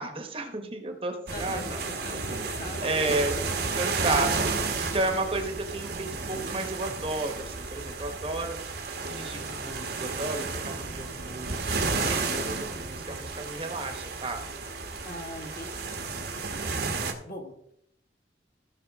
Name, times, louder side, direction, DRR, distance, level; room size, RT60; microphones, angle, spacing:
voice 1, 0.0-2.5 2.8-3.3 3.7-14.4, right 2 dB, 30° right, 5 dB, 1.2 m, -33 dB
voice 2, 1.3-3.2 15.0-15.7 17.2-17.7, left 1 dB, 50° left, 0 dB, 1.9 m, -41 dB
sound 1, 1.3-17.1, right 3 dB, 55° right, 1.3 m, -32 dB
16.0 x 5.9 x 3.6 m, 0.73 s
head